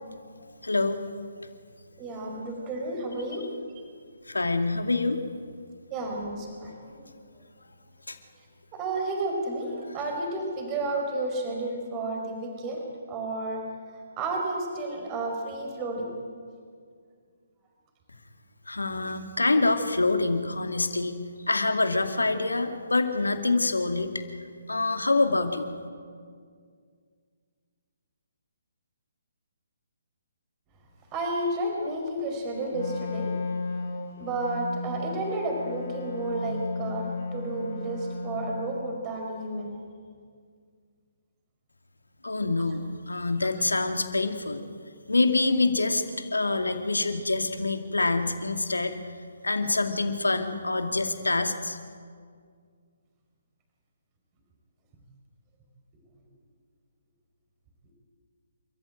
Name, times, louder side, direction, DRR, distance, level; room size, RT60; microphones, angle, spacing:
voice 1, 0.6-1.0 4.3-5.2 8.1-8.2 18.7-21.2 21.5-24.1 24.7-25.7 42.2-44.6 45.1-48.9 49.4-51.8, left 3 dB, 80° left, 6 dB, 2.4 m, -26 dB
voice 2, 2.0-3.4 5.9-7.1 8.7-12.8 13.1-13.6 14.2-16.2 31.1-33.3 34.2-39.7, right 2 dB, 25° right, 1 dB, 4.8 m, -31 dB
Wind instrument woodwind instrument, 32.7-38.7, left 3 dB, 45° left, 3.8 m, -34 dB
28.5 x 14.5 x 9.1 m, 2.1 s
figure-of-eight pair, 140°, 0 cm